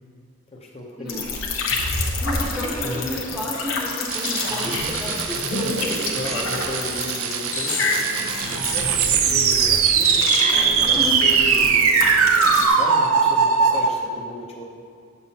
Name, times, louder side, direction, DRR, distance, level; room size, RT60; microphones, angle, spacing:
voice 1, 0.5-1.2 6.1-14.6, left 1 dB, 30° left, -2 dB, 0.7 m, -35 dB
sound 1, 1.1-12.7, left 3 dB, 75° left, 0.9 m, -27 dB
voice 2, 2.2-5.9 10.9-11.3, equal, ahead, -8 dB, 0.8 m, -31 dB
sound 2, 4.1-13.9, right 6 dB, 80° right, 0.4 m, -21 dB
8.1 x 7.0 x 2.8 m, 2.2 s
head